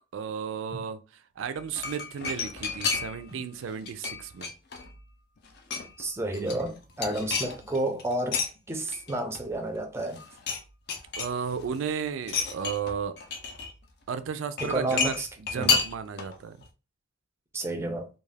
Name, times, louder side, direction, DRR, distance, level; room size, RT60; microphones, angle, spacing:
voice 1, 0.1-1.0 1.4-4.5 7.3-7.4 11.2-13.2 14.1-16.6, right 7 dB, 80° right, 0.4 m, -34 dB
sound 1, 1.5-3.3 3.6-5.0 5.4-6.0 6.3-8.5 8.9-9.8 10.0-10.6 10.9-11.8 12.2-13.7 14.6-16.4 16.6-16.7, left 5 dB, 55° left, 0.5 m, -31 dB
voice 2, 6.0-8.4 8.7-10.2 14.6-15.3 15.5-15.8 17.5-18.1, right 1 dB, 15° right, 0.4 m, -30 dB
2.3 x 2.3 x 3.2 m
head